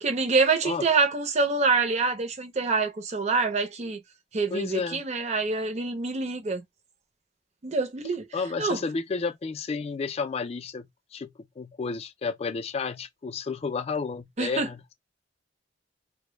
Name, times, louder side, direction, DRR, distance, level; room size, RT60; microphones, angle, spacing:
voice 1, 0.0-4.0 4.3-6.6 7.6-8.2 8.6-8.8 14.4-14.7, right 4 dB, 35° right, 0.5 m, -26 dB
voice 2, 4.5-5.0 8.3-14.8, left 4 dB, 35° left, 0.3 m, -31 dB
2.1 x 2.0 x 3.0 m
head